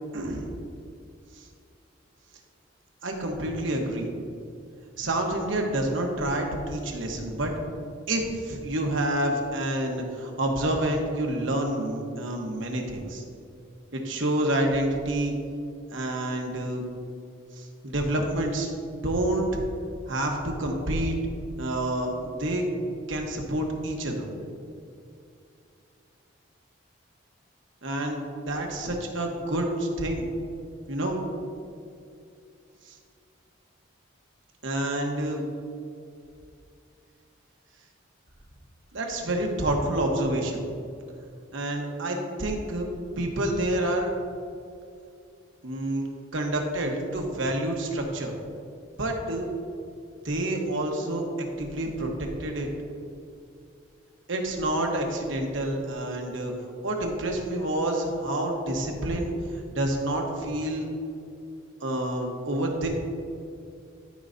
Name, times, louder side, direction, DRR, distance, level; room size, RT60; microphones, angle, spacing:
voice 1, 0.1-0.4 1.4-1.5 3.0-4.1 5.0-7.5 8.1-13.2 13.9-15.3 15.9-16.8 17.5-18.7 19.0-19.5 20.1-21.2 21.6-22.6 23.1-24.3 27.8-30.2 30.9-31.2 32.9-33.0 34.6-35.4 38.9-40.6 41.5-42.9 43.2-44.1 45.6-46.0 46.3-48.3 49.0-49.5 50.2-52.1 52.4-52.7 54.3-56.5 56.8-59.3 59.7-60.8 61.8-62.9, right 1 dB, 70° right, 1 dB, 1.1 m, -28 dB
12.5 x 5.4 x 2.6 m, 2.4 s
head